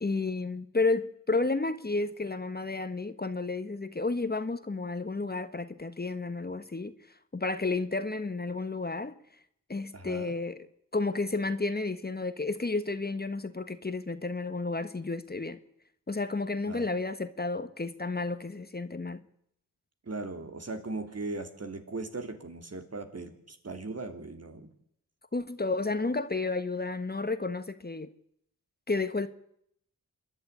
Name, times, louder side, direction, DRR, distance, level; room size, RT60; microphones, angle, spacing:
voice 1, 0.0-6.9 7.3-9.1 9.7-10.7 10.9-15.6 16.1-19.2 25.3-28.1 28.9-29.3, left 3 dB, 30° left, 1.4 m, -31 dB
voice 2, 9.9-10.3 16.7-16.9 20.1-24.7, right 3 dB, 45° right, 3.2 m, -38 dB
26.5 x 11.0 x 9.8 m
cardioid pair, 60°, 33 cm